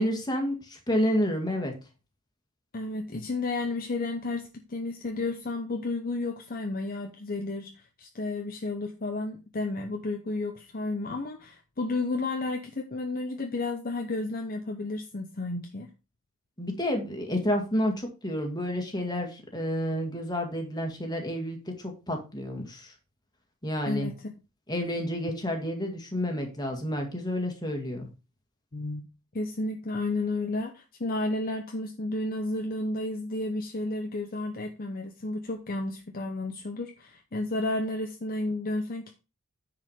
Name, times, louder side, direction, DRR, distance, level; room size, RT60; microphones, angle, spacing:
voice 1, 0.0-1.7 16.6-22.9 23.6-24.1 24.7-28.1, equal, 20° left, 3 dB, 2.0 m, -30 dB
voice 2, 2.7-15.9 23.8-24.3 28.7-29.1 29.3-39.1, left 2 dB, 40° left, 4 dB, 0.8 m, -32 dB
9.6 x 4.9 x 5.0 m, 0.30 s
head